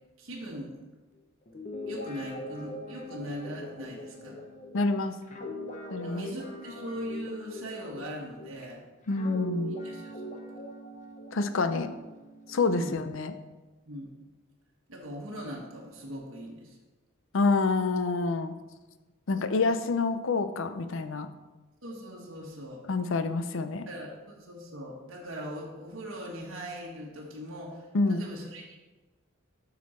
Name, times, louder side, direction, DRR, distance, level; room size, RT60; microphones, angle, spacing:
voice 1, 0.2-0.8 1.9-4.4 6.0-8.8 9.8-10.6 12.7-13.0 13.9-14.1 14.9-16.8 21.8-22.8 23.9-28.8, equal, 70° right, -3 dB, 1.4 m, -40 dB
Guitar, 1.5-8.7 9.1-12.8, equal, 35° left, 0.9 m, -41 dB
voice 2, 4.7-5.2 5.9-6.2 9.1-9.8 11.3-11.9 12.5-13.3 17.3-18.5 19.3-21.3 22.9-23.9 27.9-28.2, left 3 dB, 65° left, 10 dB, 0.5 m, -27 dB
7.3 x 6.3 x 4.3 m, 1.2 s
head